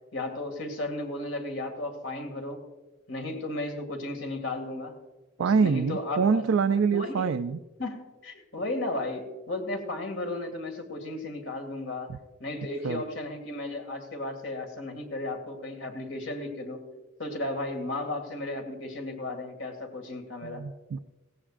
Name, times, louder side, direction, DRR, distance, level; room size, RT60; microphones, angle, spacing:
voice 1, 0.1-2.6 3.1-5.0 5.4-6.4 6.9-7.3 7.8-16.8 17.2-20.6, left 2 dB, 75° left, 4 dB, 2.1 m, -34 dB
voice 2, 5.4-7.6 12.8-13.0 20.4-21.0, right 5 dB, 85° right, 8 dB, 0.4 m, -25 dB
17.0 x 16.0 x 2.5 m, 1.2 s
head